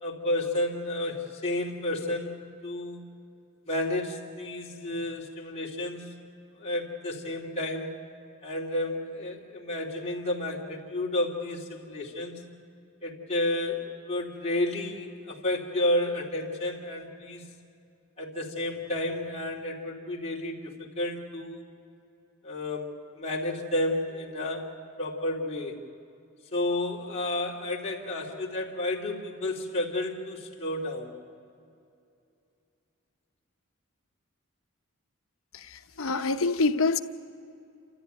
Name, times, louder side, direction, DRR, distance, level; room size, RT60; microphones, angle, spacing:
voice 1, 0.0-3.0 3.7-6.1 6.6-7.9 8.4-12.4 13.0-17.4 18.2-21.6 22.4-24.7 25.0-25.8 26.5-31.1, left 1 dB, 30° left, -3 dB, 2.8 m, -31 dB
voice 2, 35.5-37.0, left 3 dB, 70° left, 8 dB, 0.8 m, -26 dB
28.0 x 14.0 x 9.1 m, 2.6 s
head